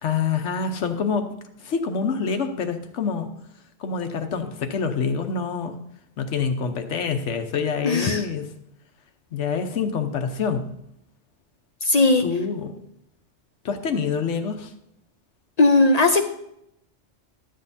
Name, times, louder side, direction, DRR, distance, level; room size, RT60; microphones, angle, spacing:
voice 1, 0.0-1.3 1.6-3.3 3.8-5.8 6.2-8.5 9.3-10.6 12.2-12.8 13.6-14.7, left 5 dB, 90° left, 7 dB, 1.2 m, -26 dB
voice 2, 7.8-8.2 11.8-12.2 15.6-16.3, left 2 dB, 50° left, 5 dB, 0.5 m, -17 dB
12.5 x 7.8 x 2.7 m, 0.78 s
omnidirectional pair, 1.2 m